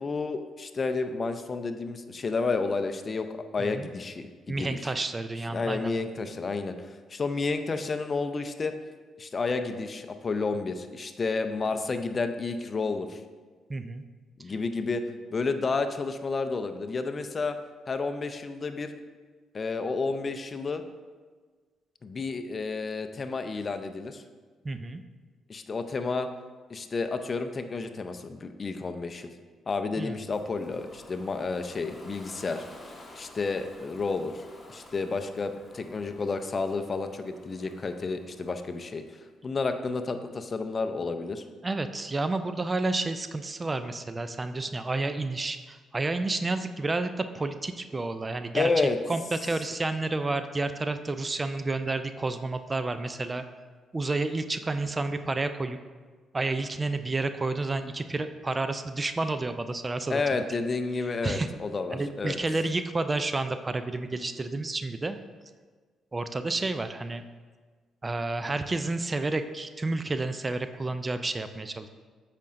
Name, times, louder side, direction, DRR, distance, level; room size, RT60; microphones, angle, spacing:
voice 1, 0.0-4.9 5.5-6.7 7.1-8.7 9.2-13.2 14.4-15.0 15.3-17.5 17.9-18.9 19.5-20.8 22.0-24.2 25.5-26.3 26.7-29.3 29.7-32.6 33.2-34.4 34.7-39.0 39.4-41.4 48.5-49.0 60.1-62.4, left 4 dB, 40° left, 8 dB, 0.5 m, -31 dB
voice 2, 4.5-5.9 13.7-14.0 24.6-25.0 30.0-30.2 41.6-48.7 49.1-53.4 53.9-55.8 56.3-60.4 61.2-61.5 61.9-65.2 66.1-67.2 68.0-71.9, right 2 dB, 30° right, 10 dB, 0.4 m, -30 dB
Ocean, 30.3-39.1, left 1 dB, 25° left, 1.5 m, -51 dB
8.3 x 5.1 x 2.6 m, 1.4 s
supercardioid pair, 65°, 0 cm